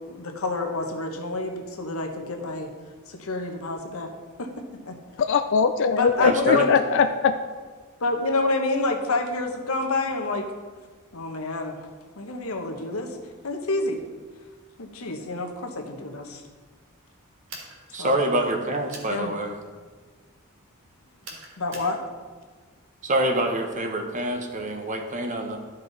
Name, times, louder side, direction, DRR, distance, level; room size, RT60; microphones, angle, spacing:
voice 1, 0.0-2.7 3.1-4.1 4.4-4.5 4.9-5.0 6.0-6.7 8.0-10.5 11.1-11.9 12.2-13.2 13.4-14.0 14.8-16.4 18.0-18.2 19.1-19.4 21.6-22.0, left 2 dB, 75° left, 3 dB, 1.1 m, -28 dB
voice 2, 5.2-7.3, left 5 dB, 60° left, 8 dB, 0.4 m, -21 dB
voice 3, 6.2-6.7 17.9-19.6 23.0-25.6, right 1 dB, 35° right, 4 dB, 1.0 m, -26 dB
sound 1, 17.5-17.8 18.9-19.1 21.2-21.9, right 3 dB, 60° right, 1.7 m, -41 dB
12.5 x 5.5 x 4.0 m, 1.4 s
head